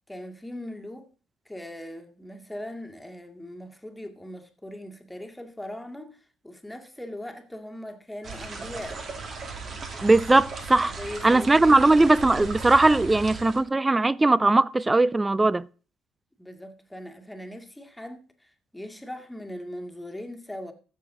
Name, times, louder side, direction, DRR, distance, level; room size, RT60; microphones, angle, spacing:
voice 1, 0.1-1.1 1.5-9.0 10.9-12.1 16.4-20.7, left 1 dB, 5° left, 2.0 m, -40 dB
sound 1, 8.2-13.6, right 4 dB, 45° right, 2.2 m, -37 dB
voice 2, 10.0-10.9 11.2-15.7, right 2 dB, 15° right, 0.4 m, -19 dB
15.0 x 6.9 x 3.8 m
hypercardioid pair, 55°, 0 cm